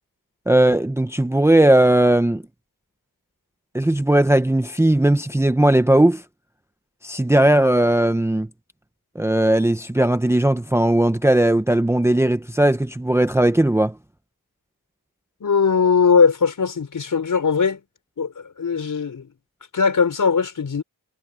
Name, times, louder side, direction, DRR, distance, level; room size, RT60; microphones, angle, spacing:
voice 1, 0.5-2.4 3.7-6.2 7.0-8.5 9.2-13.9, right 1 dB, 5° right, 0.8 m, -17 dB
voice 2, 15.4-17.8 18.2-19.3 19.7-20.8, left 5 dB, 55° left, 5.8 m, -19 dB
wide cardioid pair, 100°, 38 cm